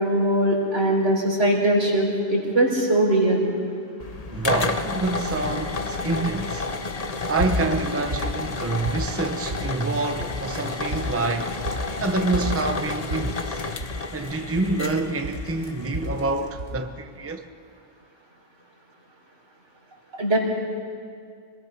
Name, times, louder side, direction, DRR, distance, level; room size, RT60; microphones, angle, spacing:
voice 1, 0.0-3.5 20.2-20.4, right 1 dB, 85° right, 4.6 m, -21 dB
sound 1, 4.0-16.5, left 3 dB, 35° left, 1.0 m, -31 dB
voice 2, 4.3-6.7 7.3-11.6 12.0-13.6 14.1-17.5, right 3 dB, 15° right, 0.8 m, -27 dB
sound 2, 7.1-7.9 8.1-9.2 9.5-9.9 10.2-10.4 10.7-12.0 12.3-15.0 15.2-16.2 16.5-16.8, equal, 65° right, 2.7 m, -31 dB
27.5 x 20.0 x 6.0 m
omnidirectional pair, 1.2 m